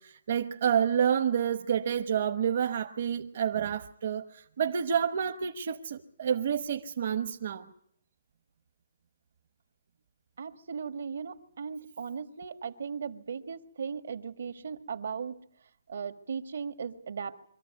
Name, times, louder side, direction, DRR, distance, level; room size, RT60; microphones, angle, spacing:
voice 1, 0.0-7.7, right 8 dB, 50° right, 1.1 m, -29 dB
voice 2, 10.4-15.3 15.9-17.4, right 6 dB, 70° right, 1.8 m, -37 dB
24.5 x 14.5 x 9.4 m
hypercardioid pair, 165°, 0 cm